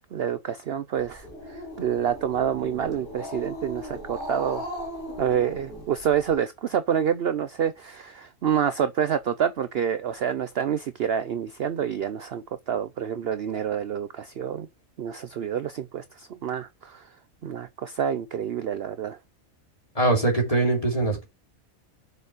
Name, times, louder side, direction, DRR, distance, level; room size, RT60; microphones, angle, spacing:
voice 1, 0.1-4.7 5.2-14.7 15.0-17.0 17.4-19.2, right 8 dB, 55° right, 0.7 m, -28 dB
Growling, 1.0-6.4, equal, 40° right, 4.5 m, -38 dB
voice 2, 19.9-21.3, right 2 dB, 25° left, 3.0 m, -22 dB
6.8 x 6.6 x 5.0 m
omnidirectional pair, 1.5 m